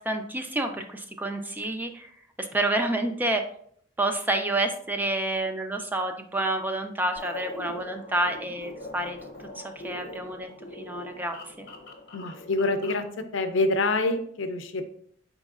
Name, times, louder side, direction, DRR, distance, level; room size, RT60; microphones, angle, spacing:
voice 1, 0.1-2.1 2.4-3.4 4.0-9.2 9.6-11.7, right 1 dB, 10° right, 5 dB, 0.4 m, -29 dB
sound 1, 7.2-13.1, left 1 dB, 60° left, 0.8 m, -42 dB
voice 2, 12.1-13.0 13.3-14.8, left 2 dB, 90° left, 8 dB, 0.5 m, -26 dB
4.4 x 4.0 x 2.4 m, 0.62 s
head